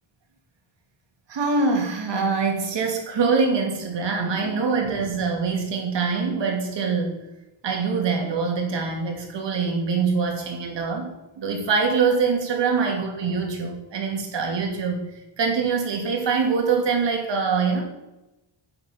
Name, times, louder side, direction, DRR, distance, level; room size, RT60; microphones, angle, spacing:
voice 1, 1.3-7.2 7.6-15.1 15.4-17.8, right 5 dB, 60° right, 2 dB, 2.9 m, -24 dB
10.0 x 7.8 x 7.2 m, 0.98 s
wide cardioid pair, 170°, 49 cm